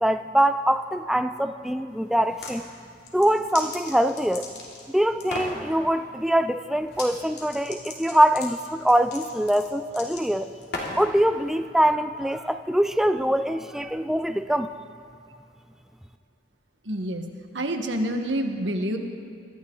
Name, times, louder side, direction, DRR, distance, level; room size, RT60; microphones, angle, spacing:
voice 1, 0.0-2.6 3.1-4.5 4.9-10.5 11.0-14.7, right 1 dB, ahead, 9 dB, 0.3 m, -23 dB
sound 1, 2.2-2.6 3.0-4.9 5.2-5.6 6.9-7.1 7.3-11.1, left 3 dB, 60° left, 2.9 m, -36 dB
voice 2, 16.8-17.2 17.5-19.0, right 1 dB, 85° right, 4 dB, 1.5 m, -27 dB
24.5 x 13.5 x 3.9 m, 2.5 s
head